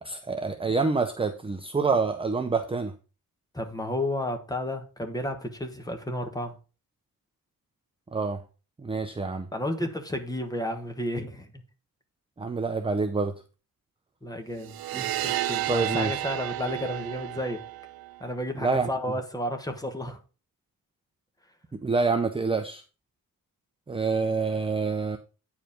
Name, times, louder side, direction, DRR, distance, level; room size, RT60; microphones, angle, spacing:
voice 1, 0.0-2.9 8.1-8.4 8.8-9.5 12.4-13.3 15.7-16.2 18.6-18.9 21.7-22.8 23.9-25.2, right 4 dB, 15° right, 0.5 m, -27 dB
voice 2, 3.5-6.6 9.5-11.6 14.2-14.8 15.2-17.6 18.2-20.2, left 1 dB, 10° left, 1.3 m, -32 dB
sound 1, 14.6-18.3, right 15 dB, 85° right, 0.5 m, -32 dB
9.2 x 4.9 x 5.0 m
wide cardioid pair, 170°, 35 cm